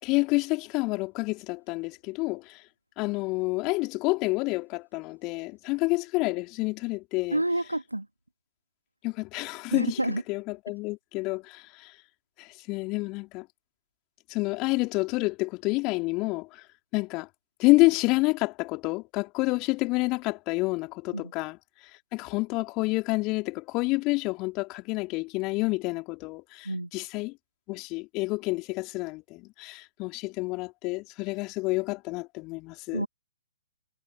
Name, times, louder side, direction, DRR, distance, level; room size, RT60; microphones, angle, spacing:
voice 1, 0.0-2.6 3.0-7.4 9.0-10.0 10.3-11.9 12.4-13.5 14.3-16.6 16.9-17.3 17.6-21.6 22.1-27.3 27.7-33.0, left 24 dB, 25° left, 3.4 m, -28 dB
voice 2, 7.3-8.1 9.7-10.2 21.1-21.3 26.6-26.9 32.9-33.1, right 1 dB, 85° right, 2.0 m, -28 dB
figure-of-eight pair, 125°, 0 cm